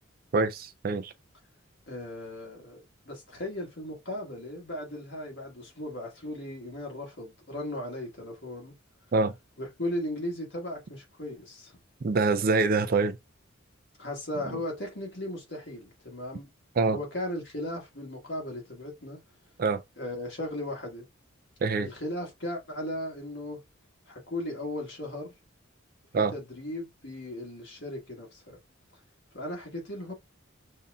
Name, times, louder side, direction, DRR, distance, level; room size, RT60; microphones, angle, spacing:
voice 1, 0.3-1.1 9.1-9.3 12.0-13.2 16.8-17.0 19.6-19.8 21.6-21.9 26.1-26.3, right 3 dB, 45° right, 0.4 m, -25 dB
voice 2, 1.9-8.7 9.6-11.8 14.0-16.5 16.9-19.2 20.0-21.0 21.8-23.6 24.1-25.3 26.1-28.6 29.3-30.1, left 1 dB, 55° left, 1.6 m, -37 dB
5.4 x 2.7 x 2.3 m
head